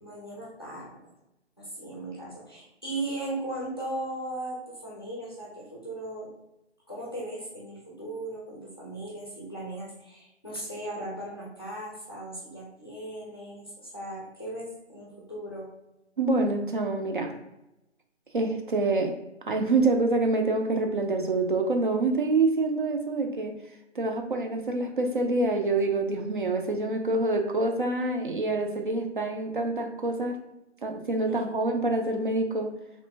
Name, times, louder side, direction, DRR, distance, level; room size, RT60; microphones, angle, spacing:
voice 1, 0.0-1.0 1.6-6.3 6.9-15.7 31.3-31.4, right 1 dB, 20° left, -4 dB, 0.5 m, -37 dB
voice 2, 16.2-17.4 18.3-19.2 19.5-23.6 24.0-30.4 30.8-32.7, right 2 dB, 45° right, 3 dB, 0.5 m, -26 dB
3.0 x 2.4 x 3.2 m, 0.91 s
figure-of-eight pair, 155°, 35 cm